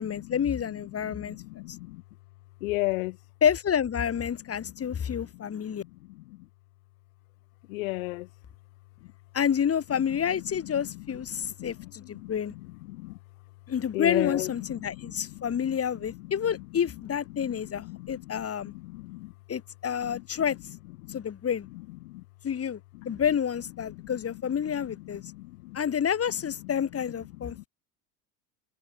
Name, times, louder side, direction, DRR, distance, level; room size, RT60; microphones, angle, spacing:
voice 1, 0.0-1.4 1.7-1.8 3.4-5.8 9.3-12.5 13.7-18.7 19.5-20.6 21.1-21.7 22.4-22.8 23.0-25.2 25.7-27.7, left 8 dB, 35° left, 6.3 m, -29 dB
voice 2, 1.0-2.0 2.6-3.2 4.6-4.7 5.3-5.6 6.1-6.4 7.7-8.3 10.7-11.0 11.3-12.3 12.9-13.2 13.9-15.8 17.3-19.3 20.0-20.2 21.1-21.2 22.0-22.2 23.0-23.2 24.0-24.1 25.0-25.8 27.4-27.6, left 21 dB, 80° left, 2.9 m, -36 dB
supercardioid pair, 95°, 41 cm